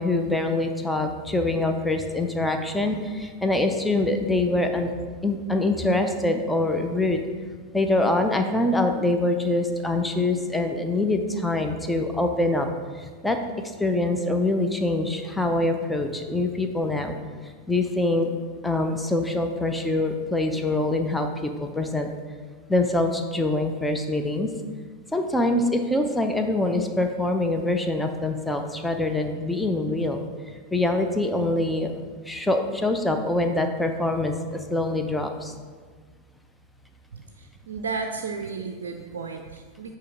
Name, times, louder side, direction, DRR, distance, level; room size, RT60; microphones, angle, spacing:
voice 1, 0.0-4.9 5.2-7.2 7.7-12.7 12.9-17.1 17.4-18.3 18.6-22.1 22.7-24.5 25.1-30.2 30.7-31.9 32.3-35.5 38.9-39.1, left 2 dB, 5° left, 5 dB, 0.5 m, -24 dB
voice 2, 37.1-40.0, right 4 dB, 60° right, 4 dB, 0.4 m, -33 dB
8.5 x 2.9 x 4.9 m, 1.6 s
figure-of-eight pair, 90°, 0 cm